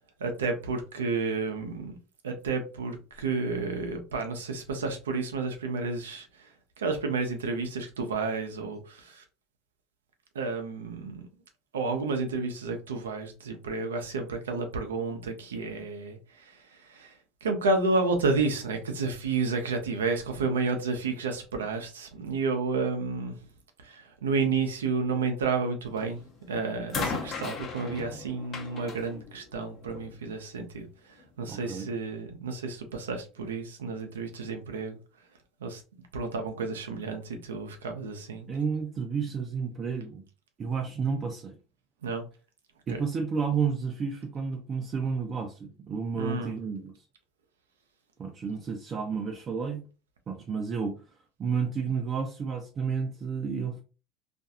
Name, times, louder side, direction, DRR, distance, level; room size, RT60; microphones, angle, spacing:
voice 1, 0.2-2.0 2.2-6.5 6.8-9.2 10.3-11.3 11.7-23.4 23.8-26.2 26.5-30.9 31.4-35.0 35.6-35.8 36.1-38.5 42.0-42.2 42.9-43.0 46.2-46.6, right 4 dB, 90° right, 0.5 m, -31 dB
sound 1, 26.0-26.3 26.9-30.2 31.2-31.3, left 4 dB, 45° left, 0.8 m, -37 dB
voice 2, 31.5-31.9 38.5-40.2 40.6-41.6 42.9-46.9 48.2-49.8 50.3-51.0 51.4-53.8, right 5 dB, 40° right, 0.5 m, -31 dB
2.4 x 2.3 x 2.7 m
hypercardioid pair, 80°, 0 cm